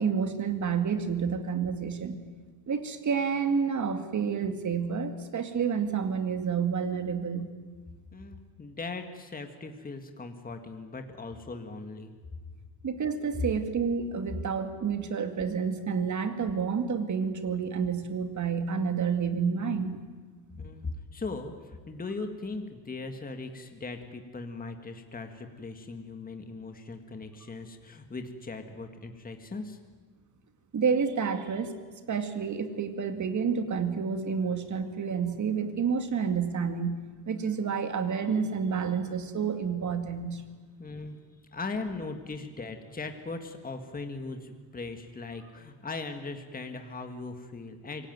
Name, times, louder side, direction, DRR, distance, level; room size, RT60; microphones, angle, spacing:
voice 1, 0.0-2.1 2.7-7.5 12.8-20.1 30.7-31.7 32.1-40.4, right 6 dB, 40° right, 7 dB, 2.3 m, -29 dB
voice 2, 8.1-12.1 20.6-29.8 40.8-41.2 41.5-48.1, left 3 dB, 20° left, 6 dB, 1.9 m, -39 dB
25.0 x 18.0 x 9.3 m, 1.4 s
cardioid pair, 120°, 45 cm